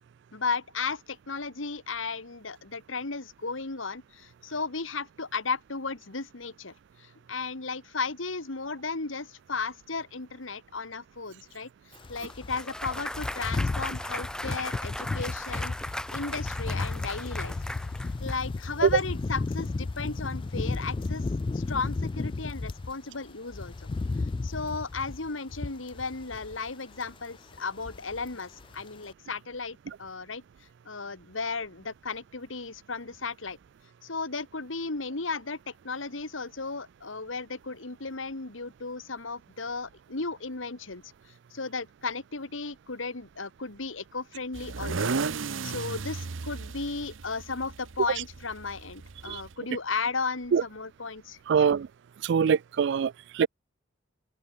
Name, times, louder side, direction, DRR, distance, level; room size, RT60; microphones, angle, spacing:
voice 1, 0.3-6.7 7.0-11.7 12.1-15.7 16.1-17.5 18.2-21.2 21.5-23.7 24.4-30.4 30.9-33.6 34.0-41.0 41.5-45.1 45.6-51.7, left 4 dB, 90° left, 2.1 m, -35 dB
sound 1, 12.0-22.9 23.3-26.7 26.9-27.2 27.5-28.4 28.6-28.8, left 3 dB, 25° left, 0.3 m, -34 dB
Clapping / Cheering / Applause, 12.2-18.4, left 1 dB, 5° left, 1.1 m, -37 dB
sound 2, 44.5-49.5, right 4 dB, 85° right, 0.8 m, -34 dB
voice 2, 51.5-51.9 52.2-53.5, right 6 dB, 65° right, 0.3 m, -23 dB
head